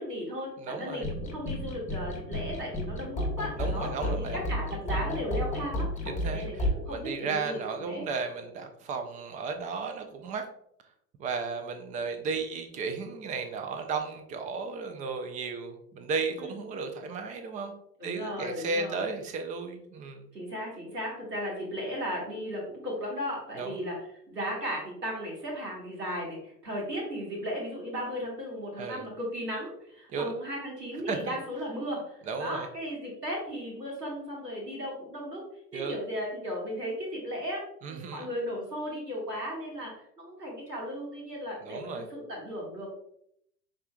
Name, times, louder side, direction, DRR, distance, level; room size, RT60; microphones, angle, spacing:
voice 1, 0.0-5.9 6.2-8.0 16.4-16.5 18.0-19.0 20.3-24.0 24.3-35.4 35.7-42.9, equal, 90° right, -3 dB, 1.8 m, -36 dB
voice 2, 0.6-1.1 3.6-4.4 6.0-10.5 11.2-17.7 18.0-20.3 23.5-23.9 28.8-29.1 30.1-30.3 31.1-31.3 32.3-32.7 35.7-36.0 37.8-38.3 41.6-42.1, right 4 dB, 20° right, 6 dB, 0.4 m, -34 dB
sound 1, 0.9-6.7, left 1 dB, 15° left, 1.0 m, -32 dB
5.4 x 3.8 x 2.2 m, 0.72 s
figure-of-eight pair, 85°, 47 cm